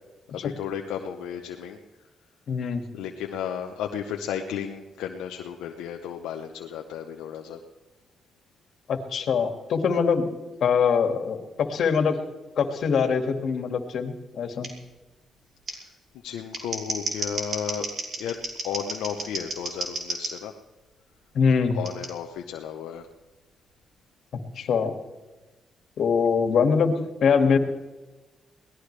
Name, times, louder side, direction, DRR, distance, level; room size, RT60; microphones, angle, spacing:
voice 1, 0.3-1.8 2.9-7.6 15.7-15.8 16.2-17.9 18.2-18.4 18.6-20.5 21.7-23.1, left 8 dB, 90° left, 3 dB, 0.9 m, -33 dB
voice 2, 2.5-2.8 8.9-10.3 10.6-12.2 12.6-14.7 21.3-21.8 24.6-24.9 26.0-26.9 27.2-27.6, left 6 dB, 70° left, 6 dB, 2.1 m, -23 dB
Scissors, 14.6-14.7 15.7-15.8 16.4-20.3 21.8-22.1, right 2 dB, 55° right, 4.7 m, -32 dB
23.0 x 18.0 x 3.4 m, 1.2 s
supercardioid pair, 60°, 0 cm